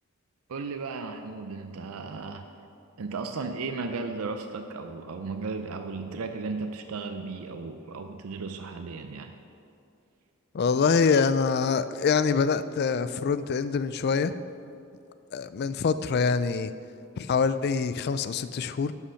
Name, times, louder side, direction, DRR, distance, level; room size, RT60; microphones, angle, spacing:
voice 1, 0.5-2.4 3.0-9.3, right 4 dB, 85° right, 6 dB, 0.5 m, -35 dB
voice 2, 10.5-14.3 15.3-16.7 17.2-18.9, left 5 dB, 50° left, 13 dB, 0.3 m, -25 dB
11.0 x 5.8 x 5.7 m, 2.6 s
head